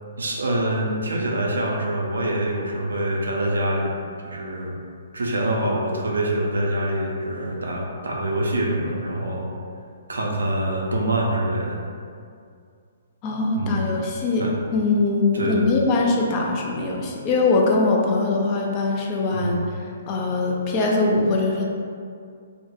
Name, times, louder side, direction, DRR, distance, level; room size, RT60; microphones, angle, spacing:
voice 1, 0.2-3.9 4.2-4.8 5.1-9.5 10.1-11.8 13.5-14.0 14.4-14.5 15.3-15.6 19.3-19.6, right 1 dB, 75° right, -1 dB, 0.4 m, -25 dB
voice 2, 13.2-14.5 14.7-19.6 20.1-21.7, left 3 dB, 30° left, -1 dB, 0.3 m, -22 dB
2.1 x 2.1 x 2.9 m, 2.3 s
figure-of-eight pair, 125°, 0 cm